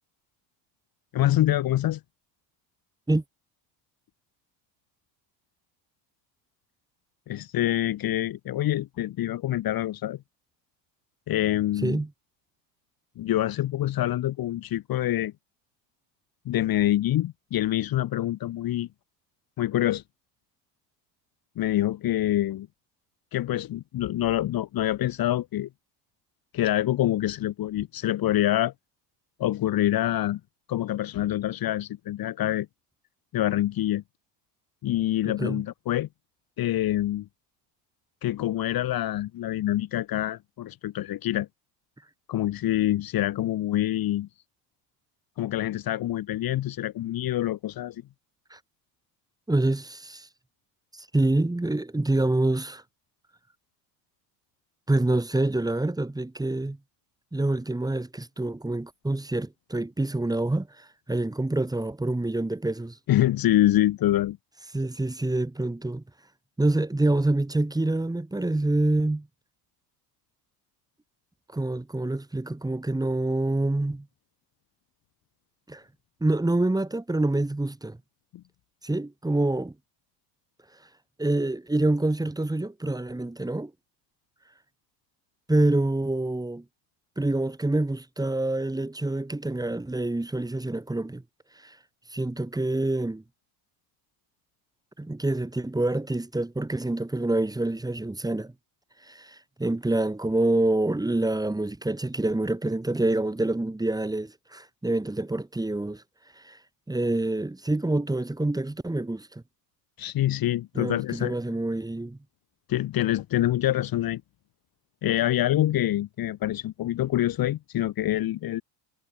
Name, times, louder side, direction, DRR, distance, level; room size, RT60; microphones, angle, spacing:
voice 1, 1.1-2.0 7.3-10.2 11.3-12.0 13.2-15.3 16.5-18.9 19.6-20.0 21.6-22.7 23.3-25.7 26.5-28.7 29.4-30.4 30.7-32.7 33.3-34.0 34.8-36.1 36.6-37.3 38.2-41.5 42.3-44.3 45.4-48.0 63.1-64.4 78.3-78.4 110.0-111.3 112.7-114.2 115.0-118.6, left 13 dB, 45° left, 1.9 m, -26 dB
voice 2, 35.2-35.6 48.5-48.6 49.5-50.3 50.9-52.8 54.9-56.8 57.3-63.0 64.7-66.0 66.6-69.3 71.5-74.1 75.7-75.8 76.2-78.0 78.8-79.7 81.2-83.7 85.5-86.6 87.2-91.2 91.6-91.8 92.1-93.2 95.0-98.5 99.0-106.0 106.4-106.6 106.9-109.4 110.7-112.2, right 2 dB, 5° right, 4.0 m, -26 dB
supercardioid pair, 110°, 49 cm